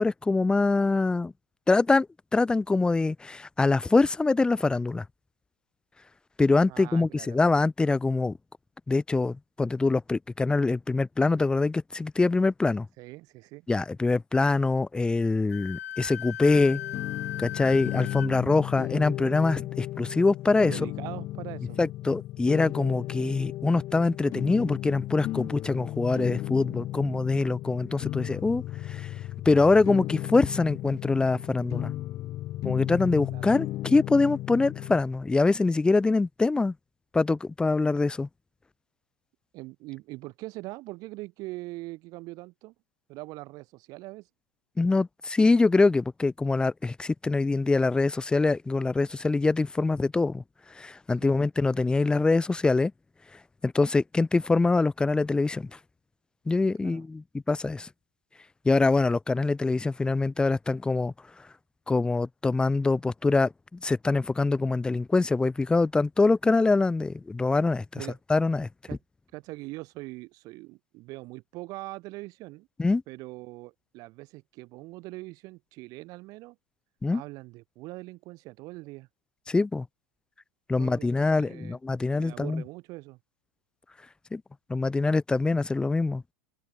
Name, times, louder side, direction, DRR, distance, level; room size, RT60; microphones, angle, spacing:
voice 1, 0.0-1.3 1.7-5.0 6.4-8.4 8.9-12.9 13.7-16.8 17.4-20.8 21.8-29.1 29.4-31.9 32.6-36.7 37.1-38.3 44.8-50.4 50.7-52.9 53.6-55.7 56.5-57.9 58.6-61.1 61.9-67.8 68.3-68.7 72.8-73.0 77.0-77.2 79.5-79.9 80.7-82.6 84.3-84.4 84.7-86.2, left 3 dB, 10° left, 1.1 m, -24 dB
voice 2, 6.6-7.4 13.0-13.7 20.6-21.8 33.3-33.5 39.5-42.7 43.1-44.3 51.2-51.3 56.8-57.0 67.9-68.2 68.9-69.0 69.3-72.7 73.1-76.6 77.1-79.1 80.8-81.8 82.1-83.2, right 21 dB, 50° right, 7.1 m, -42 dB
Wind instrument woodwind instrument, 15.5-18.3, left 11 dB, 75° left, 3.6 m, -37 dB
sound 1, 16.4-35.0, left 15 dB, 40° left, 2.0 m, -35 dB
open air
hypercardioid pair, 95°, 8 cm